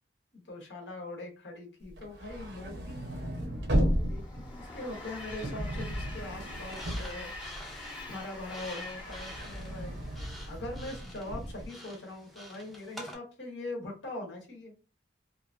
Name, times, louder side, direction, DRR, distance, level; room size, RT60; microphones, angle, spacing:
voice 1, 0.3-14.7, left 2 dB, 75° left, 1 dB, 0.9 m, -42 dB
sound 1, 1.9-8.0 8.4-11.7, equal, 70° right, 0.7 m, -34 dB
Train, 3.5-11.0, left 2 dB, 25° left, 0.9 m, -46 dB
sound 2, 6.5-13.2, equal, ahead, 0.5 m, -48 dB
2.7 x 2.5 x 2.4 m, 0.33 s
head